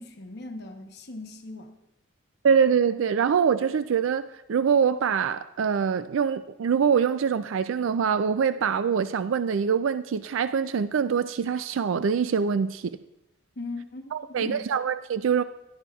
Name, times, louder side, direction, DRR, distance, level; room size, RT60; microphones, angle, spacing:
voice 1, 0.0-1.8 13.6-14.7, left 2 dB, 55° left, 0.9 m, -39 dB
voice 2, 2.4-12.9 14.1-15.4, right 6 dB, 70° right, 0.4 m, -24 dB
17.5 x 11.5 x 2.4 m
head